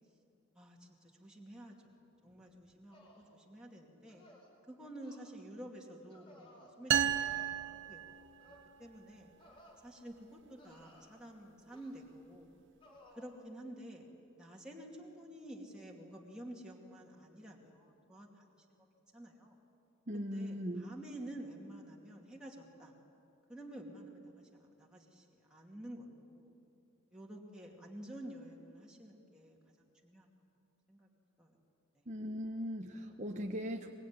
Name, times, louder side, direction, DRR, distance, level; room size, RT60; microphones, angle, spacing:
voice 1, 0.5-4.2 4.6-8.3 8.8-9.3 9.8-12.5 13.2-14.1 14.3-18.9 19.1-19.5 20.1-23.0 23.5-26.5 27.1-30.3 30.9-31.1 31.4-31.6 31.9-32.0, right 1 dB, 5° right, -3 dB, 2.6 m, -50 dB
sound 1, 2.9-3.3 4.1-4.5 5.0-5.3 6.1-6.7 7.1-7.5 8.4-8.7 9.4-9.8 10.6-11.3 11.7-12.1 12.8-13.3, left 1 dB, 25° left, 5.5 m, -60 dB
sound 2, 6.9-8.7, right 10 dB, 60° right, 0.7 m, -33 dB
voice 2, 20.1-20.9 32.1-33.9, equal, 35° right, 2 dB, 1.2 m, -39 dB
24.0 x 22.0 x 9.8 m, 2.7 s
head